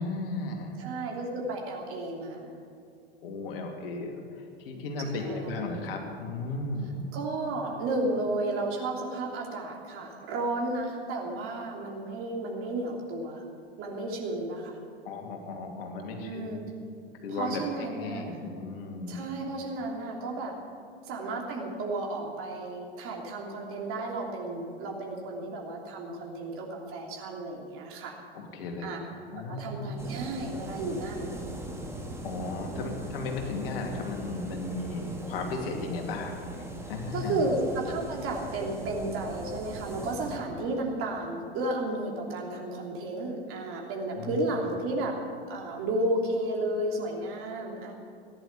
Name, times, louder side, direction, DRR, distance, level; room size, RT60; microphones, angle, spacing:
voice 1, 0.0-0.8 3.2-7.1 15.0-16.6 17.1-19.2 28.3-30.0 32.2-36.4 36.9-37.4 44.1-44.7, left 3 dB, 60° left, 2 dB, 2.6 m, -35 dB
voice 2, 0.8-2.6 5.1-5.8 7.1-13.4 13.8-14.8 16.2-16.6 17.3-18.4 19.1-20.5 21.0-28.2 28.8-29.0 29.3-31.3 32.7-32.9 37.1-45.1 45.5-47.9, right 2 dB, 45° right, 0 dB, 3.1 m, -33 dB
sound 1, 30.0-40.4, right 1 dB, 10° right, 2.4 m, -40 dB
14.5 x 11.0 x 8.4 m, 2.5 s
figure-of-eight pair, 85°, 32 cm